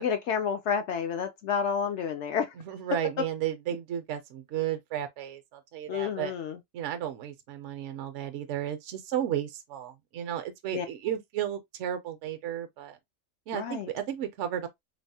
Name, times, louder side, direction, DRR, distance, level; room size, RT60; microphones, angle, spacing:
voice 1, 0.0-2.5 5.9-6.6 10.7-10.9 13.5-13.9, left 7 dB, 65° left, 0.8 m, -30 dB
voice 2, 2.6-6.3 6.7-13.0 13.5-14.7, right 10 dB, 65° right, 0.8 m, -33 dB
3.2 x 2.0 x 2.6 m
omnidirectional pair, 1.4 m